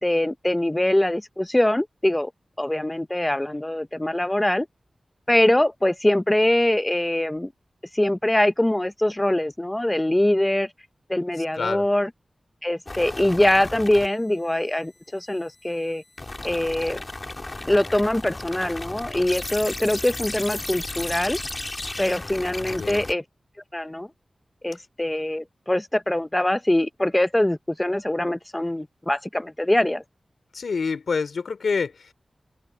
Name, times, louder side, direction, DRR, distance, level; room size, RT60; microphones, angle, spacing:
voice 1, 0.0-2.3 2.6-4.7 5.3-7.5 7.9-10.7 11.1-12.1 12.6-16.0 16.4-17.0 17.7-21.4 22.0-23.2 23.7-24.1 24.6-30.0, left 1 dB, 15° left, 0.6 m, -23 dB
voice 2, 11.5-11.9 22.6-23.1 30.5-32.1, left 5 dB, 85° left, 3.1 m, -27 dB
sound 1, 12.9-14.1 16.2-23.1, left 2 dB, 35° left, 2.8 m, -34 dB
open air
wide cardioid pair, 75°, 0 cm